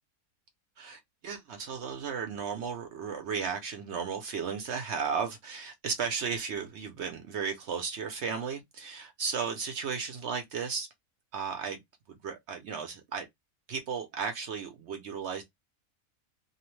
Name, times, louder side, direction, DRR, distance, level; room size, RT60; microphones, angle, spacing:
voice 1, 0.8-10.9 11.3-11.8 12.1-13.3 13.7-15.4, right 6 dB, 65° right, 0.7 m, -35 dB
2.7 x 2.0 x 3.0 m
omnidirectional pair, 1.5 m